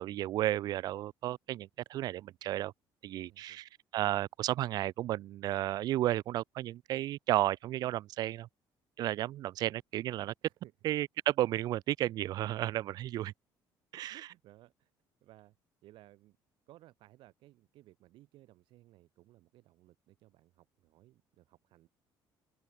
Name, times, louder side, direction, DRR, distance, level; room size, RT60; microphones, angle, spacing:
voice 1, 0.0-2.7 3.0-8.5 9.0-10.3 10.8-13.3 13.9-14.2, right 14 dB, 50° right, 0.4 m, -33 dB
voice 2, 3.1-3.6 10.4-10.7 13.9-14.9 15.2-15.6 15.8-16.4 16.7-21.9, right 16 dB, 70° right, 2.9 m, -60 dB
cardioid pair, 180°, 9 cm